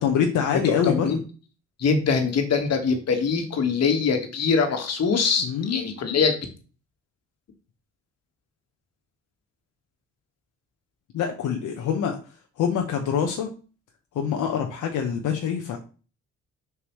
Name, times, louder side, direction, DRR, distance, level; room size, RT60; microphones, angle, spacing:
voice 1, 0.0-1.2 5.4-5.8 11.1-12.2 12.6-13.5 14.1-15.8, left 7 dB, 80° left, 2 dB, 1.0 m, -25 dB
voice 2, 0.8-1.2 1.8-6.4, left 5 dB, 55° left, 5 dB, 1.6 m, -23 dB
6.9 x 4.7 x 3.1 m, 0.35 s
cardioid pair, 90°, 30 cm